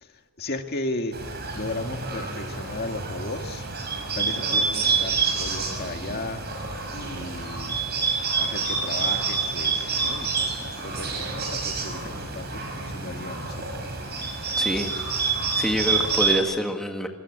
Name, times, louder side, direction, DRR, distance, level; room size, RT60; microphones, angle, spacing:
voice 1, 0.0-3.7 4.1-6.4 6.9-7.7 8.4-13.9, left 2 dB, 45° left, 5 dB, 2.0 m, -35 dB
Bird, 1.1-16.3, right 4 dB, 50° right, 6.2 m, -28 dB
voice 2, 14.6-17.1, equal, ahead, 3 dB, 1.8 m, -27 dB
26.0 x 22.0 x 8.8 m, 1.4 s
head